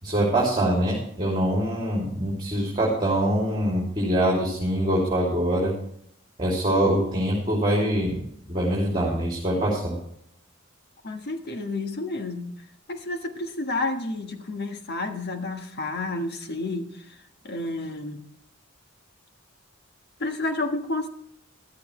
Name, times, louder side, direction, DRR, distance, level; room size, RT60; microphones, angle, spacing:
voice 1, 0.0-5.7 6.4-10.0, right 1 dB, 25° right, -3 dB, 2.8 m, -24 dB
voice 2, 11.0-12.6 12.9-17.2 17.4-18.2 20.2-21.1, left 2 dB, 50° left, 5 dB, 1.5 m, -30 dB
14.0 x 12.5 x 3.3 m, 0.70 s
head